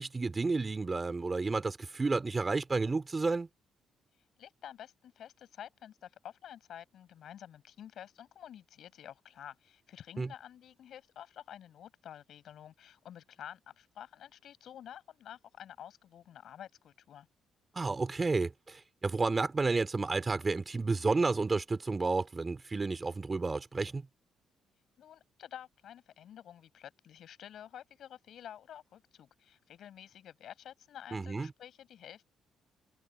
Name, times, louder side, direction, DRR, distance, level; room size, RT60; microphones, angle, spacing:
voice 1, 0.0-3.5 10.2-10.3 17.7-24.0 31.1-31.5, right 3 dB, 25° right, 3.9 m, -31 dB
voice 2, 4.4-17.3 25.0-32.2, left 10 dB, 70° left, 7.5 m, -50 dB
cardioid pair, 90°, 0 cm